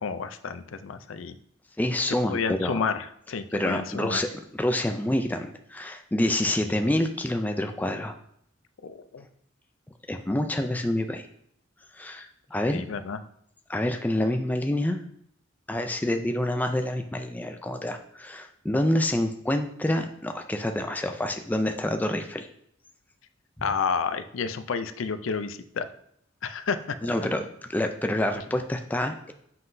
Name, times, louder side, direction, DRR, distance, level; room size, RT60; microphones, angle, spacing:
voice 1, 0.0-1.4 2.3-4.2 6.7-6.8 8.8-9.3 12.7-13.2 18.7-19.0 23.6-25.9 26.4-27.3, left 5 dB, 70° left, 11 dB, 0.5 m, -31 dB
voice 2, 1.8-2.8 3.5-4.3 4.5-8.1 10.1-11.2 11.9-12.8 13.7-15.0 15.7-22.5 23.6-23.7 27.0-29.3, left 1 dB, 10° left, 5 dB, 0.4 m, -27 dB
7.5 x 5.7 x 2.7 m, 0.71 s
head